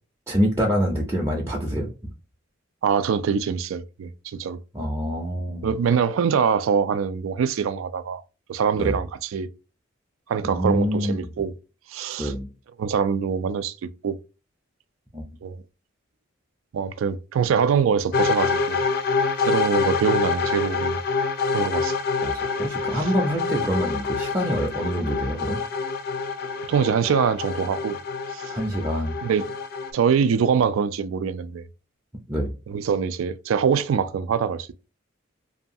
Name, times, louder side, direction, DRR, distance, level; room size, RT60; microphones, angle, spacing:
voice 1, 0.3-1.9 4.7-5.7 8.7-9.0 10.4-11.3 12.2-12.5 15.1-15.3 22.2-25.6 28.5-29.1 32.3-32.5, equal, 15° right, 0.5 m, -26 dB
voice 2, 2.8-4.6 5.6-8.2 8.5-9.5 10.3-11.5 11.9-12.3 12.8-14.2 15.4-15.6 16.7-18.8 19.5-21.0 21.5-21.9 26.7-28.0 28.3-28.5 29.2-29.5 29.9-31.7 32.7-34.7, right 6 dB, 80° right, 0.3 m, -24 dB
sound 1, 18.1-29.9, left 4 dB, 50° left, 0.3 m, -26 dB
2.7 x 2.3 x 2.6 m
head